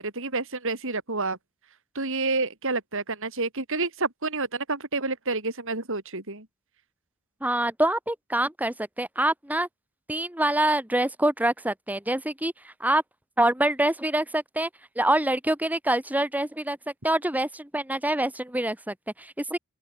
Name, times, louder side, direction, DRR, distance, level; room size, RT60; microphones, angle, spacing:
voice 1, 0.0-1.4 1.9-6.5, right 3 dB, 60° right, 6.2 m, -29 dB
voice 2, 7.4-9.7 10.1-13.0 13.4-14.7 15.0-16.8 17.0-19.6, right 1 dB, 5° right, 1.9 m, -25 dB
open air
head